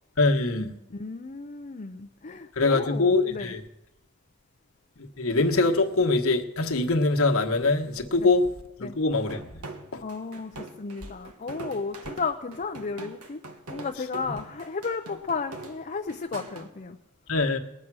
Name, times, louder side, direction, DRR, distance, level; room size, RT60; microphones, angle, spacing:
voice 1, 0.2-0.8 2.6-3.6 5.2-8.4 8.8-9.5 9.9-10.0 14.3-14.4 17.3-17.6, left 3 dB, 65° left, 2 dB, 1.3 m, -23 dB
voice 2, 0.9-3.5 8.2-8.3 8.8-9.0 10.0-13.4 13.7-17.0, left 4 dB, 35° left, 5 dB, 0.6 m, -34 dB
sound 1, 9.3-16.7, right 2 dB, 85° right, 1.4 m, -42 dB
20.0 x 8.7 x 6.2 m, 0.96 s
head